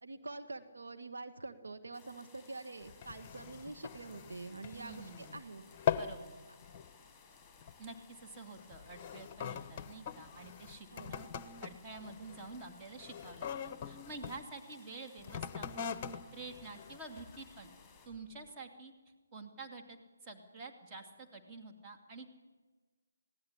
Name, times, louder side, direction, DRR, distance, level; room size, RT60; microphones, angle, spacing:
voice 1, 0.0-5.6 10.9-11.1, right 3 dB, 75° right, 7 dB, 1.8 m, -46 dB
sound 1, 1.9-18.1, left 5 dB, 5° left, 6.1 m, -61 dB
sound 2, 2.8-5.4 5.7-6.2 6.6-6.9 7.6-7.9 8.6-14.4 15.2-17.5 18.1-18.2, left 8 dB, 25° left, 1.1 m, -41 dB
voice 2, 4.7-5.4 5.9-6.3 7.8-11.3 11.6-16.0 16.3-17.7 18.1-18.9 19.3-22.3, right 3 dB, 20° right, 3 dB, 2.6 m, -49 dB
20.0 x 17.0 x 10.0 m, 1.4 s
figure-of-eight pair, 150°, 0 cm